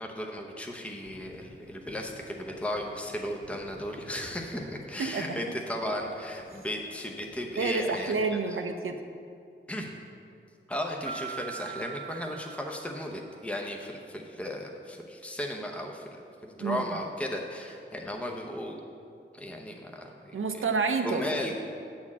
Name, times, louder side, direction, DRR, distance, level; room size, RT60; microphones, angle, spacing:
voice 1, 0.0-8.6 9.7-9.9 10.7-16.2 16.4-18.8 19.3-20.3 21.0-21.5, left 1 dB, 5° left, 1 dB, 0.8 m, -35 dB
sound 1, 0.9-8.4, left 1 dB, 70° left, 1.9 m, -49 dB
voice 2, 5.0-5.4 7.6-9.0 16.6-16.8 20.3-21.5, right 4 dB, 85° right, 6 dB, 0.7 m, -29 dB
sound 2, 11.1-13.7, right 9 dB, 30° right, 0.5 m, -42 dB
8.6 x 4.4 x 7.2 m, 2.4 s
wide cardioid pair, 75°, 20 cm